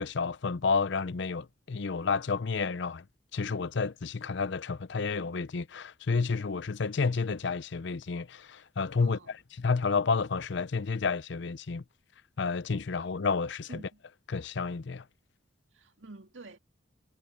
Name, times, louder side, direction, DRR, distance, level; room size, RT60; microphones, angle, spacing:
voice 1, 0.0-3.0 3.3-9.2 9.6-11.8 12.4-13.7 14.3-15.0, left 4 dB, 65° left, 0.6 m, -30 dB
voice 2, 9.0-9.3 13.7-14.0 15.7-16.6, right 2 dB, 75° right, 2.3 m, -48 dB
head